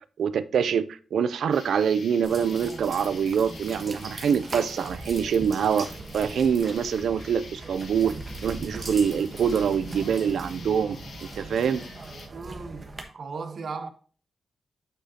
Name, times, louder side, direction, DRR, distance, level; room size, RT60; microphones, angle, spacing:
voice 1, 0.2-5.9 6.1-11.0 11.4-11.8, right 7 dB, 90° right, 0.4 m, -25 dB
sound 1, 1.5-12.3, left 4 dB, 70° left, 1.3 m, -47 dB
sound 2, 2.2-13.0, right 2 dB, 30° right, 1.2 m, -40 dB
voice 2, 12.3-13.9, right 4 dB, 55° right, 0.8 m, -37 dB
8.8 x 5.1 x 2.8 m
wide cardioid pair, 145°, 0 cm